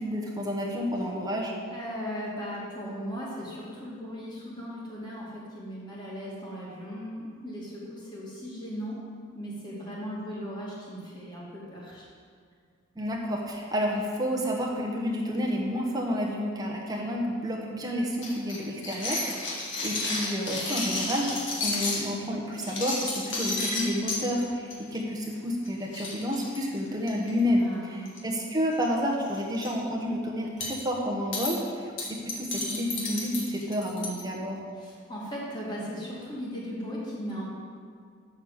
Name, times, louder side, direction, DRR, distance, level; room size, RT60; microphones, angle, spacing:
voice 1, 0.0-1.5 12.9-34.6, equal, 20° right, -2 dB, 1.2 m, -30 dB
voice 2, 1.7-9.0 9.3-12.1 27.5-28.0 34.8-37.5, equal, 20° left, -6 dB, 2.2 m, -37 dB
sound 1, 18.2-22.0 22.5-24.2 24.7-25.0 25.2-25.4 25.6-25.7 25.9-27.3 28.1-28.4 28.7-28.9 29.3-29.7 30.6-30.8 31.3-31.5 32.0-34.2, left 2 dB, 60° left, 1.9 m, -32 dB
6.6 x 6.4 x 7.4 m, 2.1 s
head